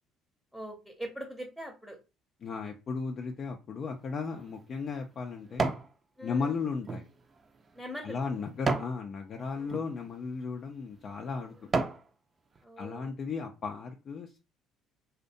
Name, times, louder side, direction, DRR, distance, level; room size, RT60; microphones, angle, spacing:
voice 1, 0.5-2.0 6.2-6.6 7.7-8.3 9.6-9.8 12.6-13.1, equal, ahead, 0.7 m, -42 dB
voice 2, 2.4-5.7 6.2-7.1 8.0-11.6 12.8-14.4, left 5 dB, 50° left, 0.4 m, -35 dB
sound 1, 4.1-5.9 6.4-9.0 9.6-9.9 10.5-10.7 11.2-12.1 12.6-12.7, right 3 dB, 35° right, 0.4 m, -34 dB
2.6 x 2.1 x 2.6 m
hypercardioid pair, 65°, 0 cm